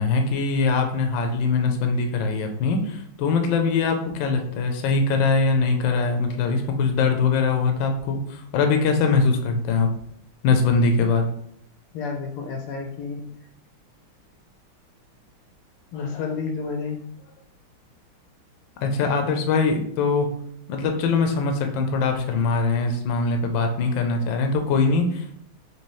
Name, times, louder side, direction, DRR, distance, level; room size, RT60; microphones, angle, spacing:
voice 1, 0.0-9.9 10.4-11.3 18.8-20.3 20.7-25.4, left 4 dB, 70° left, 4 dB, 1.3 m, -22 dB
voice 2, 11.9-13.2 15.9-17.0, left 5 dB, 90° left, 3 dB, 1.7 m, -30 dB
4.5 x 3.1 x 3.1 m, 0.70 s
omnidirectional pair, 2.3 m